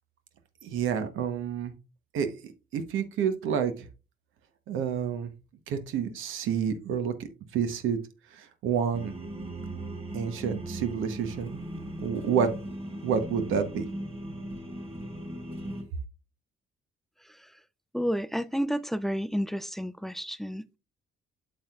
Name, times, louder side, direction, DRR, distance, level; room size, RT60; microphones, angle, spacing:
voice 1, 0.6-1.7 2.1-3.9 4.7-5.3 5.7-8.0 8.3-9.1 10.1-11.6 12.0-12.5 13.0-13.9, right 7 dB, 85° right, 1.0 m, -29 dB
sound 1, 8.9-15.8, right 1 dB, 30° right, 3.6 m, -38 dB
voice 2, 17.9-20.8, equal, ahead, 0.3 m, -30 dB
8.7 x 6.3 x 2.3 m
cardioid pair, 90°, 20 cm